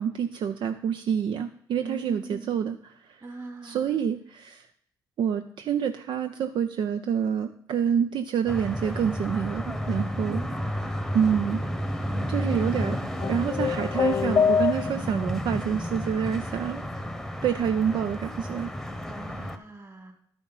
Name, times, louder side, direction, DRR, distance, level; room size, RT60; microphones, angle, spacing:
voice 1, 0.0-3.3 3.6-4.7 5.2-10.4 11.1-11.6 12.3-13.0 13.3-16.8 17.4-18.7, right 8 dB, 70° right, 9 dB, 0.5 m, -27 dB
voice 2, 1.8-2.6 3.2-4.0 10.2-10.9 19.1-20.1, right 3 dB, 35° right, 4 dB, 2.7 m, -41 dB
sound 1, 8.5-19.6, equal, ahead, 1.0 m, -32 dB
sound 2, 13.2-15.3, left 6 dB, 40° left, 0.4 m, -24 dB
11.5 x 5.3 x 5.6 m, 0.68 s
cardioid pair, 70°, 8 cm